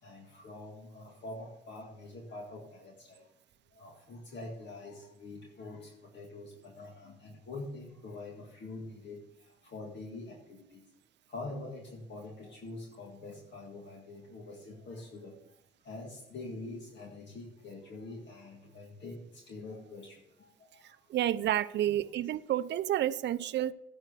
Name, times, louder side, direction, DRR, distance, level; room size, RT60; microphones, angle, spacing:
voice 1, 0.0-3.3 3.7-10.8 11.3-15.6 15.8-21.0, left 2 dB, 65° left, 1.9 m, -45 dB
voice 2, 21.1-23.7, right 12 dB, 60° right, 0.5 m, -30 dB
10.5 x 6.3 x 6.6 m
cardioid pair, 90°, 20 cm